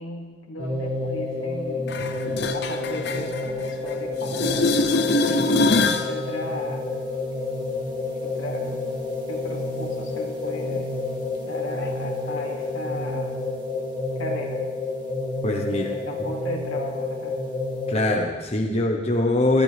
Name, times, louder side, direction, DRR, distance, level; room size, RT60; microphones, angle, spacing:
voice 1, 0.0-2.0 2.5-4.7 5.2-6.9 8.2-8.8 9.3-10.9 11.4-13.3 14.2-14.6 15.7-17.4, left 1 dB, 85° left, 0 dB, 2.4 m, -36 dB
sound 1, 0.6-18.2, left 2 dB, 25° right, 2.5 m, -29 dB
sound 2, 1.9-3.9 4.2-6.1 11.9-12.0, left 2 dB, 55° left, 0.8 m, -23 dB
voice 2, 15.4-15.9 17.9-19.6, left 2 dB, 30° left, 1 dB, 1.1 m, -23 dB
19.0 x 14.0 x 3.5 m, 1.3 s
head